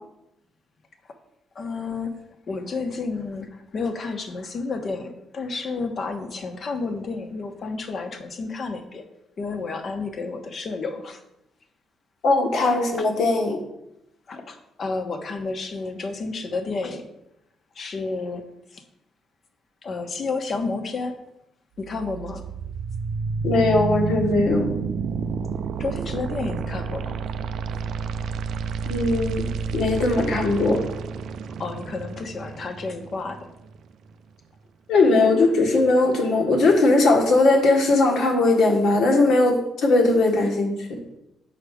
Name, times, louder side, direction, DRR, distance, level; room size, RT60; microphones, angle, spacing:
voice 1, 1.5-2.1 2.5-9.0 9.4-11.2 13.0-13.1 14.3-17.0 17.7-18.4 18.7-18.8 19.8-21.1 21.8-22.4 25.8-27.2 31.6-33.4, left 3 dB, 50° left, 6 dB, 1.1 m, -31 dB
voice 2, 12.2-13.6 23.4-24.7 28.8-29.4 29.7-30.8 34.9-41.0, left 2 dB, 75° left, 1 dB, 1.7 m, -19 dB
sound 1, 21.8-33.8, right 5 dB, 75° right, 0.4 m, -30 dB
6.5 x 5.1 x 5.0 m, 0.84 s
cardioid pair, 90°, 0 cm